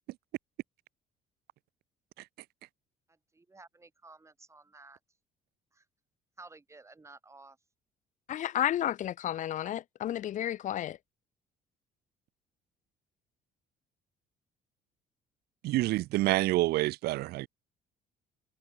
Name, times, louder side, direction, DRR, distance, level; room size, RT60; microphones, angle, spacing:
voice 1, 3.3-5.0 5.7-5.8 6.4-7.6, right 3 dB, 15° right, 3.3 m, -53 dB
voice 2, 8.3-11.0, left 11 dB, 50° left, 0.5 m, -32 dB
voice 3, 15.6-17.5, right 18 dB, 70° right, 0.4 m, -27 dB
cardioid pair, 110°, 17 cm